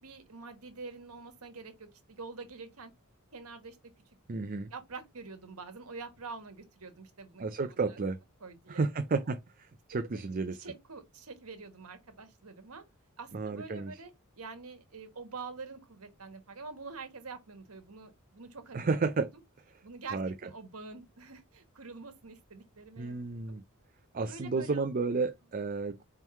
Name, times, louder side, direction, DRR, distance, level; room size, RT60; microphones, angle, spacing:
voice 1, 0.0-2.9 3.3-3.8 4.3-4.4 4.7-7.4 7.7-8.0 8.4-8.8 9.9-10.0 10.6-12.8 13.2-18.9 19.8-23.4 24.2-24.8, right 4 dB, 85° right, 1.5 m, -46 dB
voice 2, 4.3-4.7 7.4-8.2 8.7-10.6 13.3-13.9 18.7-19.3 20.1-20.3 23.0-23.6 24.1-26.0, right 4 dB, 40° right, 0.5 m, -32 dB
4.6 x 3.7 x 5.5 m
head